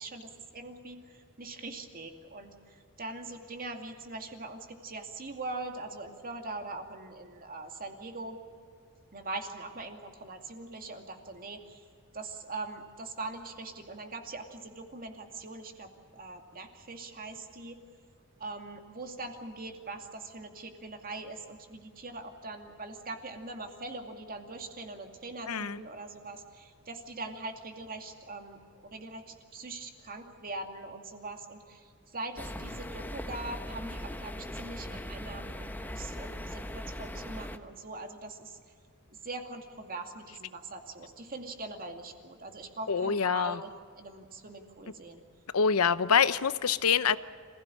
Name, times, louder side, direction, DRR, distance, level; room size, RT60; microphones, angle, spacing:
voice 1, 0.0-8.4 9.1-11.8 12.1-17.8 18.4-38.6 39.1-45.2, right 2 dB, 45° right, 5 dB, 2.4 m, -42 dB
voice 2, 25.5-25.8 42.9-43.6 45.5-47.2, left 6 dB, 85° left, 14 dB, 0.8 m, -25 dB
sound 1, 32.4-37.6, left 1 dB, 10° left, 1.0 m, -39 dB
26.5 x 16.5 x 8.7 m, 2.3 s
head